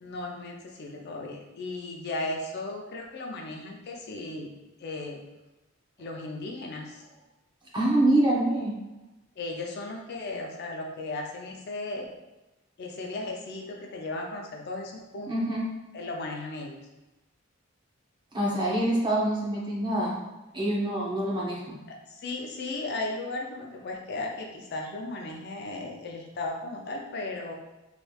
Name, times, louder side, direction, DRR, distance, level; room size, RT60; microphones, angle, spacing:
voice 1, 0.0-4.5 4.8-5.2 6.0-7.0 9.4-12.1 12.8-15.3 15.9-16.8 21.9-27.6, left 2 dB, 55° left, 0 dB, 0.4 m, -36 dB
voice 2, 7.7-8.7 15.3-15.7 18.3-20.2 20.5-21.8, right 1 dB, 25° right, -5 dB, 0.8 m, -25 dB
3.1 x 3.0 x 2.3 m, 1.0 s
head